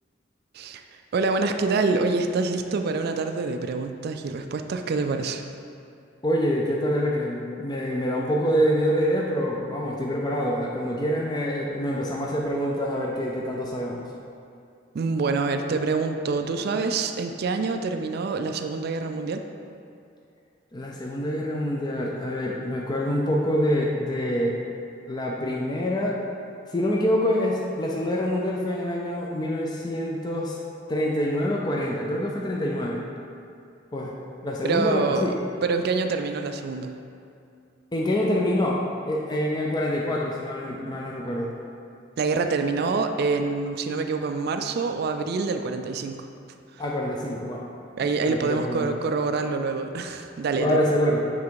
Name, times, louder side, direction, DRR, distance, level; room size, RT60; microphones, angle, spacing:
voice 1, 0.5-5.4 14.9-19.4 34.6-35.3 35.6-36.9 42.2-46.3 48.0-50.8, right 4 dB, 55° right, 6 dB, 0.3 m, -26 dB
voice 2, 6.2-14.0 20.7-24.6 25.1-26.2 26.7-30.6 30.9-33.1 33.9-34.1 34.4-35.3 37.9-41.6 46.8-47.7 48.2-49.0 50.6-51.2, equal, 20° left, -2 dB, 0.5 m, -26 dB
7.2 x 3.5 x 4.6 m, 2.5 s
head